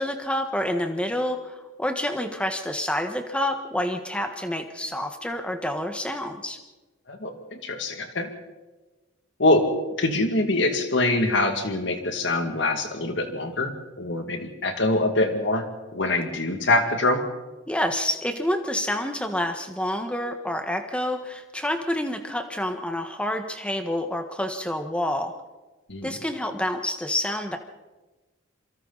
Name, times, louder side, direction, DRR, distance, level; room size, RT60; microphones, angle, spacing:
voice 1, 0.0-6.6 17.7-25.3 26.0-27.6, left 1 dB, 5° left, 6 dB, 1.5 m, -28 dB
voice 2, 7.1-8.3 9.4-9.7 10.0-15.6 15.9-17.2 25.9-26.1, left 2 dB, 60° left, 5 dB, 2.4 m, -24 dB
27.0 x 23.5 x 4.2 m, 1.2 s
head